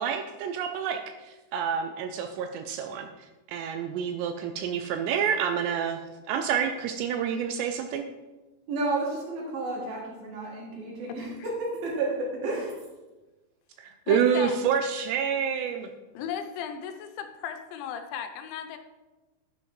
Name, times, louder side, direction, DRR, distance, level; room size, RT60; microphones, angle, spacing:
voice 1, 0.0-6.0 6.3-8.1 13.8-15.9, right 7 dB, 80° right, 6 dB, 2.6 m, -28 dB
voice 2, 8.7-12.8, right 2 dB, 55° right, -3 dB, 4.0 m, -31 dB
voice 3, 14.1-14.6 16.1-18.8, left 8 dB, 85° left, 7 dB, 3.1 m, -36 dB
10.5 x 10.5 x 3.2 m, 1.2 s
omnidirectional pair, 5.3 m